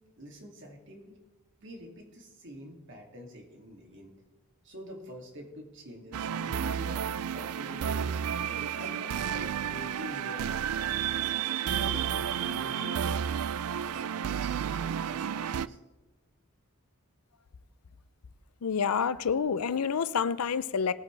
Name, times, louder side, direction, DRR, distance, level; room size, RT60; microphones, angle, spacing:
voice 1, 0.2-1.2 1.6-4.1 4.6-11.0 11.6-13.2 13.9-14.5 15.1-15.8, equal, 55° right, 2.5 m, -46 dB
sound 1, 6.1-15.7, right 8 dB, 80° right, 0.4 m, -31 dB
voice 2, 18.6-20.9, left 6 dB, 90° left, 0.5 m, -28 dB
20.0 x 9.0 x 3.4 m
head